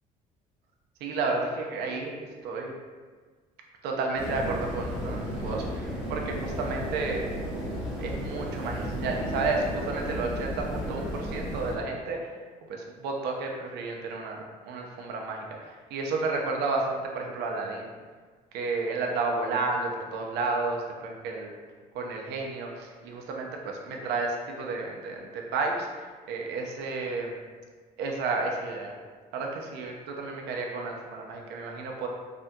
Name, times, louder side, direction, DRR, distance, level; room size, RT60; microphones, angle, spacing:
voice 1, 1.0-2.7 3.8-7.3 8.0-12.3 12.7-17.9 18.5-21.5 21.9-27.4 28.0-29.0 29.3-32.1, right 3 dB, 85° right, 1 dB, 0.5 m, -32 dB
sound 1, 4.2-11.8, equal, 5° right, 0.9 m, -34 dB
3.5 x 2.1 x 2.6 m, 1.5 s
cardioid pair, 110°, 17 cm